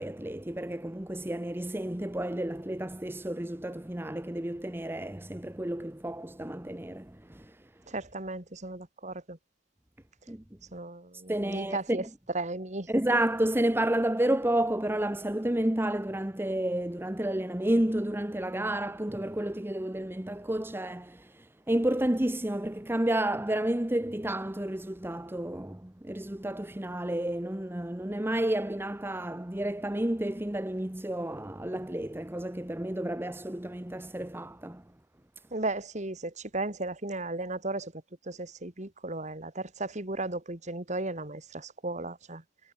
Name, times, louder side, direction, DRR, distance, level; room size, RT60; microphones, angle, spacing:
voice 1, 0.0-7.6 10.3-10.4 11.3-12.1 12.9-34.8, right 1 dB, 10° right, 0.9 m, -31 dB
voice 2, 7.9-9.4 10.7-12.1 12.3-12.9 35.5-42.4, right 2 dB, 40° right, 2.8 m, -35 dB
head